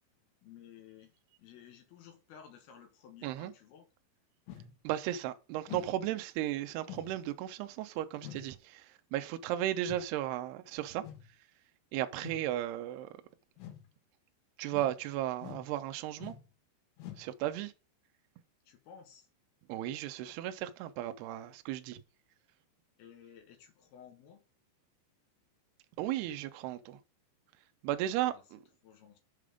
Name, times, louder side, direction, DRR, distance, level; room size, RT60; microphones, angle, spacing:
voice 1, 0.4-1.1 1.4-3.9 18.7-19.3 23.0-24.4 28.2-28.4 28.8-29.2, left 8 dB, 65° left, 2.9 m, -55 dB
sound 1, 4.5-4.8 5.7-6.0 6.9-7.2 8.2-8.5 9.9-10.1 11.0-11.3 12.2-12.5 13.6-13.9 14.7-15.0 15.4-15.7 16.2-16.5 17.0-17.3, left 11 dB, 90° left, 3.9 m, -46 dB
voice 2, 4.8-11.0 11.9-13.1 14.6-16.4 17.2-17.7 19.7-22.0 26.0-27.0 27.8-28.6, right 13 dB, 90° right, 2.4 m, -35 dB
7.6 x 5.0 x 5.1 m
omnidirectional pair, 5.4 m